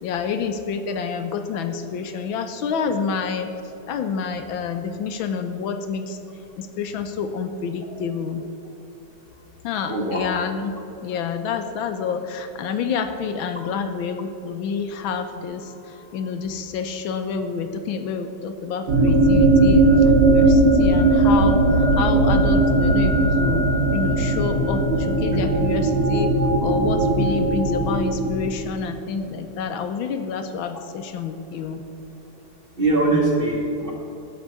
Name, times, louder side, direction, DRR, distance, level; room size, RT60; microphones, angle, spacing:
voice 1, 0.0-3.5 3.9-6.2 6.6-8.4 9.6-10.8 11.0-26.3 26.6-31.8, left 5 dB, 80° left, 8 dB, 1.4 m, -28 dB
voice 2, 9.9-10.3 32.8-33.9, right 2 dB, 30° right, -2 dB, 1.4 m, -21 dB
sound 1, 18.9-28.7, right 2 dB, 80° right, 2.4 m, -18 dB
12.5 x 4.5 x 8.1 m, 3.0 s
omnidirectional pair, 2.3 m